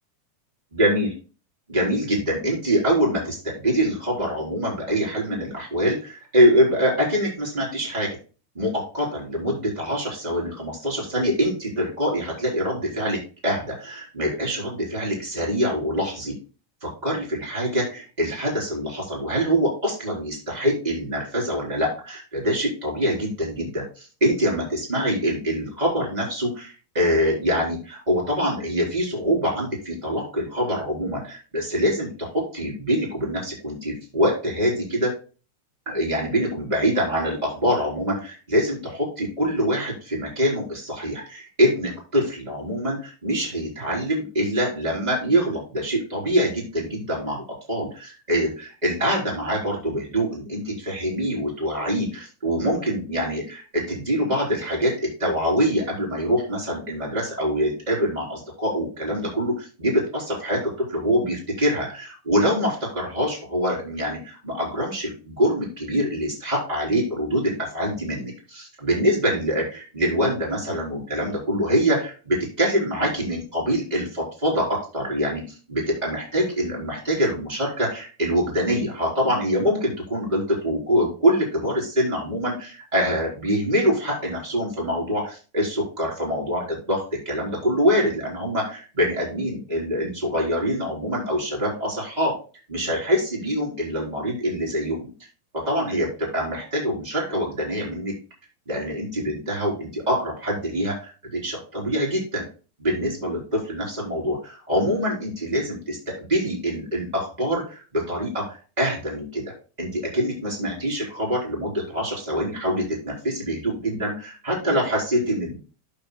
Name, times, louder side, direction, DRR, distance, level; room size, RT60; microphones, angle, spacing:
voice 1, 0.7-1.1 1.7-8.2 8.5-16.4 16.8-35.1 35.9-54.9 55.2-75.4 75.7-92.3 92.7-95.1 95.5-98.1 98.7-102.5 102.8-109.4 109.8-115.6, equal, 10° right, -4 dB, 3.4 m, -24 dB
12.5 x 6.7 x 2.2 m, 0.35 s
omnidirectional pair, 5.4 m